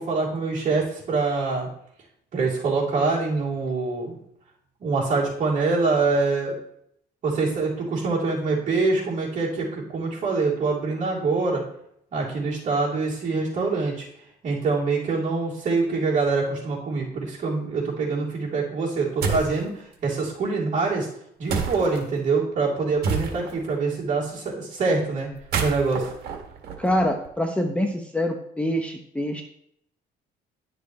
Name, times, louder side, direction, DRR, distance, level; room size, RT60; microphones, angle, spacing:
voice 1, 0.0-1.7 2.3-4.2 4.8-6.6 7.2-11.6 12.1-14.1 14.4-21.1 21.4-25.3 25.6-26.1, right 4 dB, 50° right, -5 dB, 3.4 m, -25 dB
sound 1, 19.2-19.6 21.5-22.0 23.0-23.7 25.3-27.3, right 5 dB, 70° right, 1.6 m, -28 dB
voice 2, 26.8-29.4, left 1 dB, 5° left, 3 dB, 0.8 m, -25 dB
11.0 x 6.7 x 3.1 m, 0.71 s
cardioid pair, 110°, 17 cm